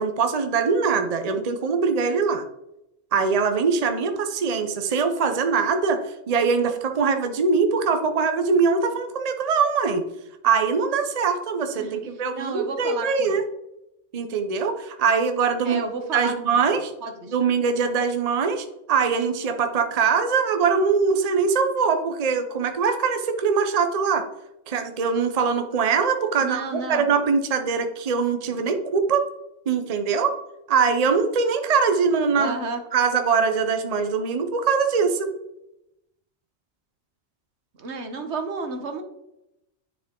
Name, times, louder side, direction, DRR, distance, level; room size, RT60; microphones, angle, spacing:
voice 1, 0.0-2.4 3.1-6.0 6.3-10.0 10.4-13.4 14.1-15.8 16.1-16.9 17.3-24.2 24.7-26.6 26.9-29.2 29.7-30.3 30.7-32.6 32.9-35.3, right 5 dB, 40° right, 6 dB, 0.8 m, -22 dB
voice 2, 11.8-13.4 15.6-17.4 26.4-27.0 28.5-28.7 32.3-32.8 37.8-39.0, right 3 dB, 75° right, 6 dB, 1.3 m, -32 dB
10.0 x 4.7 x 3.7 m, 0.86 s
omnidirectional pair, 1.2 m